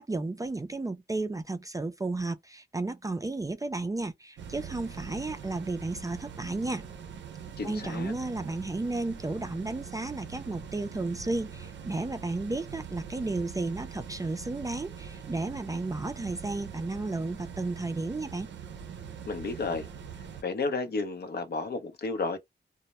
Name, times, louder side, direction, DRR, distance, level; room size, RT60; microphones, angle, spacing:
voice 1, 0.0-6.8 7.6-18.5, right 2 dB, 20° right, 0.3 m, -33 dB
sound 1, 4.4-20.4, right 7 dB, 90° right, 0.4 m, -43 dB
voice 2, 7.6-8.1 19.3-19.9 20.4-22.4, left 3 dB, 60° left, 0.6 m, -32 dB
2.1 x 2.0 x 2.9 m
cardioid pair, 75°, 18 cm